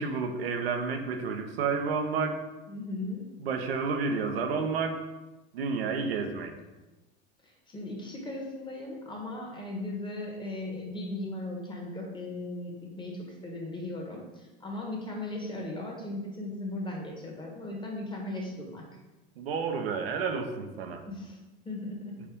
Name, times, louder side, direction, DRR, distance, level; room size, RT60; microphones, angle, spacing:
voice 1, 0.0-2.4 3.4-5.0 5.5-6.5 19.4-21.0, right 5 dB, 90° right, 4 dB, 0.6 m, -30 dB
voice 2, 2.7-3.5 7.4-18.8 21.1-22.2, left 2 dB, 15° left, 0 dB, 1.1 m, -37 dB
4.6 x 2.6 x 3.6 m, 1.1 s
hypercardioid pair, 90°, 29 cm